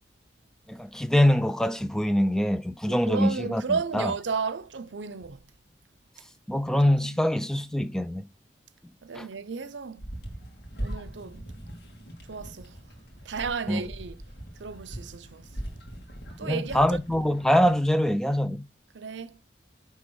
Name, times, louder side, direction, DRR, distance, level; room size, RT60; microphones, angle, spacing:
voice 1, 0.7-4.1 6.5-8.2 9.1-9.3 13.7-13.8 16.4-18.7, equal, 5° left, 0.4 m, -24 dB
voice 2, 2.9-5.4 7.0-7.2 9.0-10.0 10.8-11.5 12.3-12.8 13.2-14.2 14.6-15.5 16.4-17.0 18.9-19.4, right 5 dB, 85° right, 0.6 m, -33 dB
sound 1, 10.0-17.8, right 1 dB, 70° left, 2.2 m, -41 dB
9.4 x 3.5 x 6.3 m
head